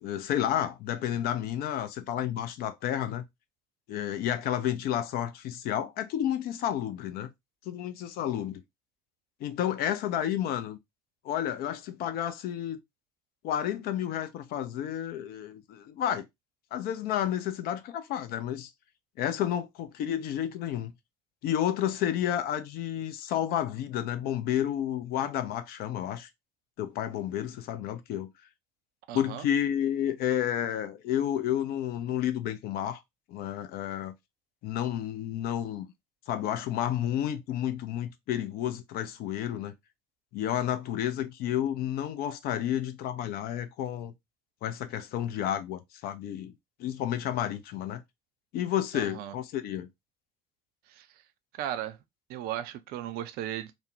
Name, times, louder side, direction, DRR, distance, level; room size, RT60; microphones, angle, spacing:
voice 1, 0.0-3.2 3.9-7.3 7.7-8.6 9.4-10.8 11.2-12.8 13.4-16.2 16.7-18.7 19.2-20.9 21.4-26.3 26.8-28.3 29.1-33.0 33.3-34.1 34.6-35.9 36.3-39.7 40.3-44.1 44.6-46.5 46.8-48.0 48.5-49.9, left 10 dB, 55° left, 0.5 m, -31 dB
voice 2, 29.1-29.5 48.9-49.4 50.9-51.1 51.5-52.0 52.3-53.7, right 12 dB, 55° right, 0.4 m, -36 dB
2.5 x 2.0 x 2.7 m
figure-of-eight pair, 50°, 19 cm